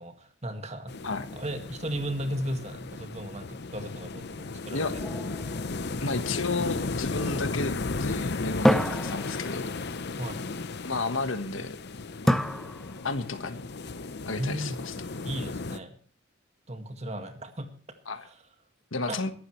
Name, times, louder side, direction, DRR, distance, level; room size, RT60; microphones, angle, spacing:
voice 1, 0.0-1.0 1.3-4.9 10.2-10.4 14.3-14.8 15.2-15.9 16.7-17.7 18.2-18.4 19.1-19.2, right 1 dB, 35° right, 7 dB, 1.9 m, -35 dB
sound 1, 0.9-15.8, left 3 dB, 55° left, 0.8 m, -35 dB
sound 2, 5.0-6.6 8.6-10.0 12.3-13.4, equal, ahead, 0.6 m, -28 dB
voice 2, 6.0-7.7 8.0-9.7 10.8-11.8 12.2-12.4 13.0-13.6 14.3-14.9 18.1-18.2 18.9-19.3, left 3 dB, 75° left, 9 dB, 1.4 m, -32 dB
22.5 x 12.0 x 3.2 m, 0.42 s
head